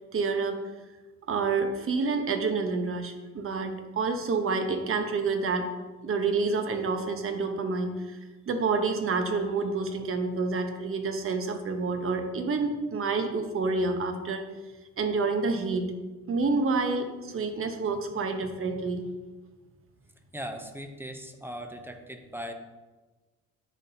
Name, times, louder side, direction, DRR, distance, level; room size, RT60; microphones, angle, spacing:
voice 1, 0.1-0.6 1.3-5.7 6.0-8.2 8.5-14.5 15.0-15.9 16.3-19.0, right 4 dB, 45° right, 6 dB, 0.9 m, -28 dB
voice 2, 20.3-22.5, equal, 5° right, 5 dB, 0.6 m, -39 dB
10.5 x 4.1 x 2.7 m, 1.2 s
cardioid pair, 90°, 30 cm